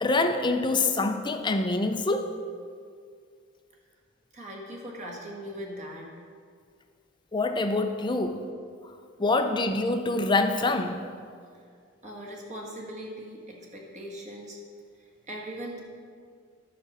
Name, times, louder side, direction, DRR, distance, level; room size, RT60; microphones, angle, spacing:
voice 1, 0.0-2.3 7.3-8.4 9.2-11.0, left 2 dB, 20° left, 7 dB, 0.5 m, -25 dB
voice 2, 4.3-6.1 8.2-8.4 12.0-14.6 15.0-15.8, equal, 35° right, -1 dB, 1.6 m, -40 dB
11.0 x 5.2 x 6.5 m, 2.1 s
head